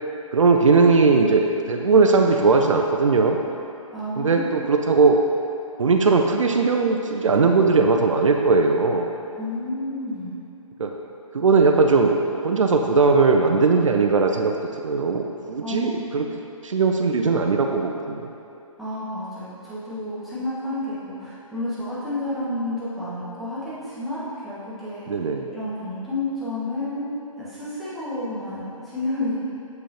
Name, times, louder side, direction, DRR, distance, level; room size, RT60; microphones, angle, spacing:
voice 1, 0.3-3.4 4.2-5.2 5.8-9.1 10.8-10.9 11.3-12.2 12.4-16.3 16.6-18.3 25.1-25.5, right 4 dB, 65° right, 3 dB, 0.5 m, -19 dB
voice 2, 3.9-4.4 9.4-10.4 15.6-16.0 18.8-25.1 25.5-29.5, left 1 dB, ahead, -13 dB, 1.2 m, -30 dB
7.6 x 5.5 x 2.8 m, 2.8 s
figure-of-eight pair, 140°, 18 cm